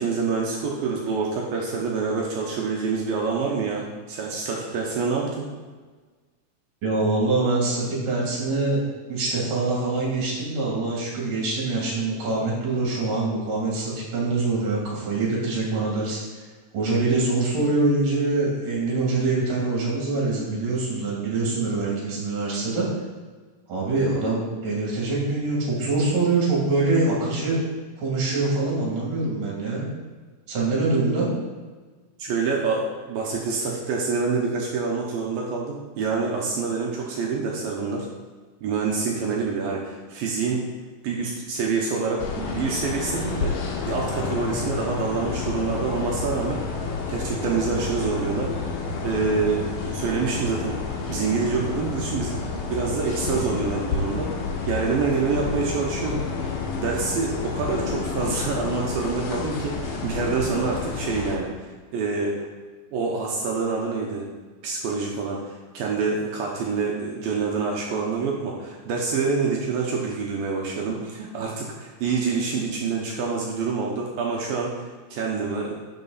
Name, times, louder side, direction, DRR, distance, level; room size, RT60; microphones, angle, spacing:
voice 1, 0.0-5.5 32.2-38.1 38.6-40.7 41.0-43.6 43.8-46.6 47.1-48.5 49.0-50.8 51.1-54.3 54.7-56.2 56.8-62.5 62.9-64.3 64.6-75.8, right 4 dB, 80° right, -2 dB, 2.2 m, -26 dB
voice 2, 6.8-8.8 9.1-16.4 16.7-22.9 23.7-27.6 28.0-29.8 30.5-31.3, right 3 dB, 50° right, -5 dB, 4.1 m, -24 dB
sound 1, 42.2-61.4, left 4 dB, 85° left, 1.8 m, -30 dB
11.0 x 6.0 x 4.1 m, 1.4 s
omnidirectional pair, 5.3 m